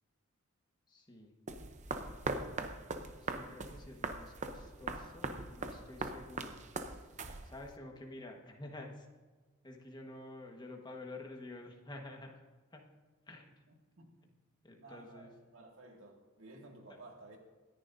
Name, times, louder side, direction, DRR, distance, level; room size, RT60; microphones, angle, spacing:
voice 1, 0.9-1.3 3.2-6.6 6.9-7.1 7.4-9.1 9.6-12.4 12.7-12.9 13.3-13.6 14.6-15.3, left 2 dB, 20° left, 1 dB, 1.4 m, -50 dB
sound 1, 1.5-7.8, right 3 dB, 35° right, 0.8 m, -41 dB
voice 2, 14.8-17.4, right 2 dB, 65° right, 1 dB, 2.2 m, -54 dB
26.0 x 10.5 x 2.7 m, 1.4 s
head